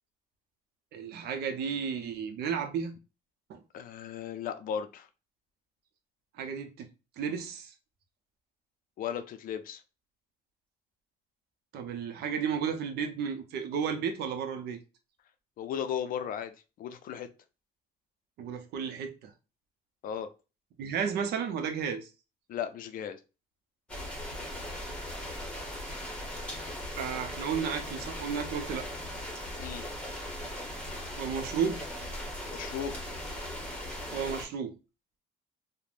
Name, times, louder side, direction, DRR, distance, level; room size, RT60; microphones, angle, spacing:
voice 1, 0.9-2.9 3.5-3.6 6.4-6.9 7.2-7.7 11.7-14.8 18.4-19.3 20.8-22.1 27.0-28.8 31.2-31.8 34.1-34.7, right 7 dB, 75° right, 0.6 m, -33 dB
voice 2, 3.7-5.1 9.0-9.8 15.6-16.5 16.8-17.3 20.0-20.3 22.5-23.2 29.6-29.8 32.5-32.9, left 8 dB, 55° left, 0.4 m, -35 dB
sound 1, 23.9-34.5, left 1 dB, 5° left, 0.9 m, -39 dB
3.2 x 2.1 x 2.5 m
cardioid pair, 110°, 17 cm